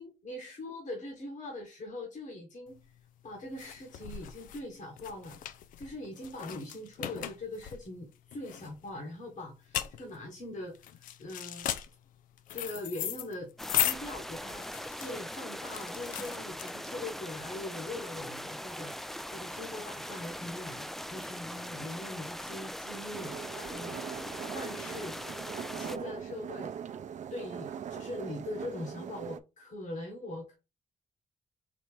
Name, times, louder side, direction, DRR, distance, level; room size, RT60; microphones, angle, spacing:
voice 1, 0.0-2.8 3.2-5.4 5.8-11.7 12.5-14.7 15.0-25.2 25.7-26.7 27.3-30.6, left 1 dB, 65° left, 1.5 m, -42 dB
sound 1, 2.8-17.1, left 11 dB, 85° left, 0.4 m, -37 dB
sound 2, 13.6-26.0, equal, ahead, 0.3 m, -41 dB
sound 3, 23.1-29.4, right 8 dB, 60° right, 0.4 m, -41 dB
4.1 x 2.9 x 3.4 m
supercardioid pair, 50°, 14 cm